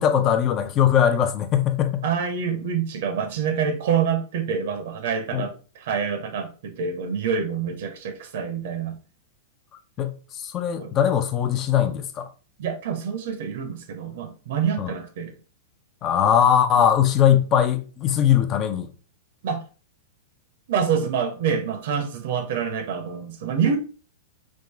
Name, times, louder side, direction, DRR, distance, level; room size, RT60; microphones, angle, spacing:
voice 1, 0.0-2.0 5.3-5.4 10.0-12.3 14.8-14.9 16.0-18.9, left 9 dB, 35° left, 0.5 m, -20 dB
voice 2, 2.0-9.0 10.8-10.9 12.6-15.3 19.4-19.6 20.7-23.8, right 7 dB, 60° right, 0.6 m, -26 dB
3.5 x 2.5 x 3.1 m
hypercardioid pair, 105°, 0 cm